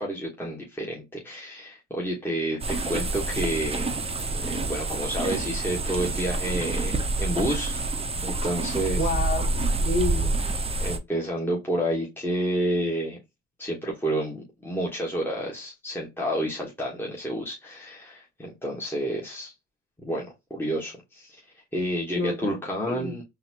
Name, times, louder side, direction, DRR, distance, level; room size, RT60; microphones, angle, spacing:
voice 1, 0.0-3.9 4.3-7.8 8.2-9.1 10.8-13.2 13.6-19.5 20.0-21.4 21.7-23.2, right 1 dB, 5° left, 1.2 m, -30 dB
sound 1, 2.6-11.0, right 3 dB, 20° right, 0.7 m, -27 dB
voice 2, 9.0-10.3 22.1-22.6 22.9-23.2, left 2 dB, 35° left, 2.3 m, -29 dB
4.0 x 2.6 x 2.8 m
cardioid pair, 90°, 30 cm